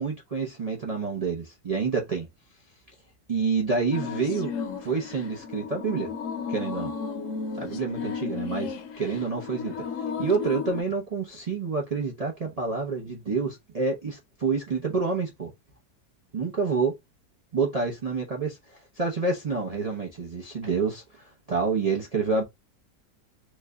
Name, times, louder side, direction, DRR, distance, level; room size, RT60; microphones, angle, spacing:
voice 1, 0.0-2.3 3.3-4.5 4.8-6.1 6.5-6.9 7.5-9.7 10.2-15.5 16.3-17.0 17.5-22.4, right 4 dB, 60° right, 0.3 m, -28 dB
sound 1, 3.9-10.8, left 6 dB, 65° left, 0.9 m, -34 dB
3.1 x 2.2 x 3.5 m
omnidirectional pair, 1.8 m